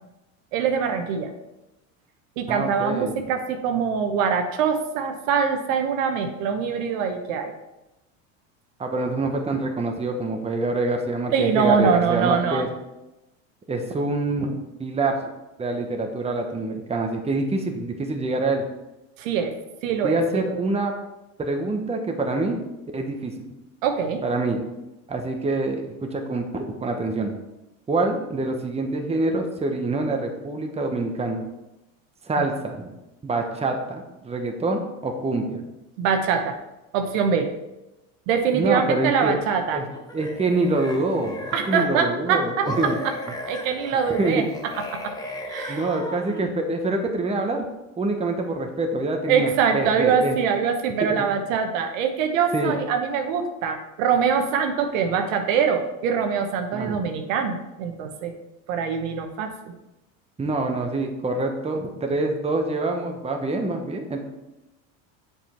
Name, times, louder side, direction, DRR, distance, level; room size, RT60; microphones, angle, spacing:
voice 1, 0.5-1.3 2.4-7.5 11.3-12.7 19.2-19.5 19.8-20.6 23.8-24.2 36.0-36.6 36.9-37.5 38.3-39.8 41.5-43.1 43.5-44.4 45.0-45.1 45.5-45.9 49.3-58.3 58.7-59.5, right 6 dB, 70° right, 5 dB, 1.1 m, -23 dB
voice 2, 2.5-3.1 8.8-12.7 13.7-15.2 15.6-18.6 20.0-20.9 21.4-22.6 22.9-23.3 24.2-24.6 25.1-25.8 26.1-27.3 27.9-31.4 32.3-32.9 33.2-35.6 38.5-39.4 39.7-39.9 40.1-41.4 41.7-43.0 44.1-44.5 45.7-47.7 48.0-50.4 51.1-51.2 52.5-52.8 56.7-57.0 60.4-64.2, right 2 dB, 15° right, 3 dB, 1.1 m, -25 dB
sound 1, 39.9-42.1 42.6-46.5, left 1 dB, 10° left, 1.1 m, -36 dB
7.4 x 5.4 x 4.4 m, 0.96 s
hypercardioid pair, 95°, 41 cm